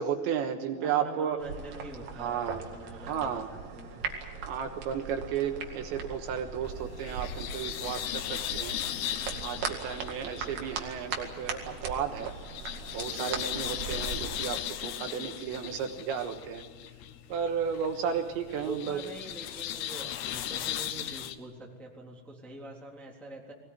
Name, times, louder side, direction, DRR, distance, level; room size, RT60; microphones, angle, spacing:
voice 1, 0.0-1.4 2.2-2.6 3.0-3.5 4.5-8.8 9.4-12.3 12.9-16.6 17.3-19.0, right 7 dB, 75° right, 5 dB, 3.2 m, -33 dB
voice 2, 0.7-4.0 18.6-23.5, right 2 dB, ahead, -1 dB, 2.2 m, -44 dB
sound 1, 1.4-14.5, right 5 dB, 50° right, 3.2 m, -39 dB
sound 2, 6.6-21.4, left 11 dB, 75° left, 2.4 m, -38 dB
22.5 x 18.5 x 9.8 m, 1.4 s
omnidirectional pair, 5.8 m